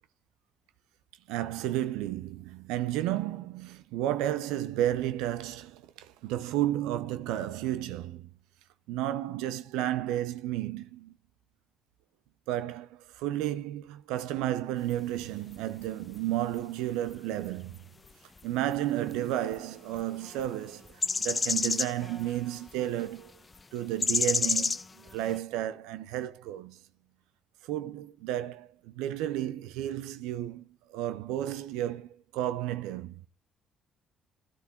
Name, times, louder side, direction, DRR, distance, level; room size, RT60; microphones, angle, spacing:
voice 1, 1.3-8.3 8.9-11.1 12.5-17.8 18.4-23.3 23.7-26.8 27.6-33.2, right 13 dB, 80° right, 0.6 m, -32 dB
sound 1, 14.9-15.2 15.5-15.8 16.1-16.2 17.1-17.2 17.5-17.6 18.7-18.8 19.1-19.2 19.5-19.6 19.9-20.5 20.9-22.7 23.0-23.1 24.0-25.4, left 4 dB, 30° left, 0.6 m, -29 dB
12.5 x 12.0 x 4.3 m
hypercardioid pair, 55°, 0 cm